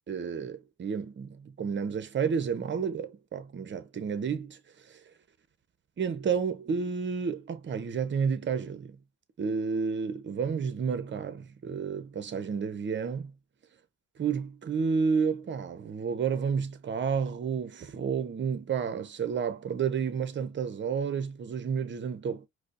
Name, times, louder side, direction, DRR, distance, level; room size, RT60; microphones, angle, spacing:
voice 1, 0.1-5.0 6.0-9.0 9.4-13.3 14.2-22.5, right 6 dB, 40° right, 0.7 m, -31 dB
4.8 x 2.1 x 2.4 m
cardioid pair, 90°, 30 cm